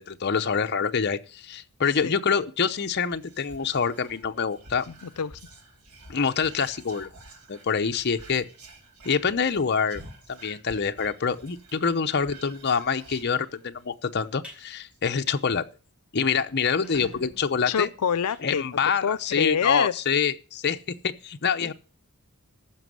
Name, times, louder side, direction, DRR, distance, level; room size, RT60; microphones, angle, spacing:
voice 1, 0.0-4.9 6.1-7.1 7.5-8.5 9.0-10.0 10.3-15.6 16.1-17.9 18.4-20.8 21.0-21.7, left 6 dB, 50° left, 0.7 m, -26 dB
Whispering, 2.9-13.9 14.3-14.4 14.6-15.0, right 2 dB, 85° right, 2.4 m, -50 dB
voice 2, 4.9-5.4 17.7-18.7 19.0-19.9 21.6-21.7, left 7 dB, 85° left, 0.5 m, -27 dB
sound 1, 14.4-14.6 15.1-15.3 15.7-15.8 16.0-16.1 16.6-19.2, equal, 5° right, 4.2 m, -48 dB
14.5 x 6.1 x 6.3 m
head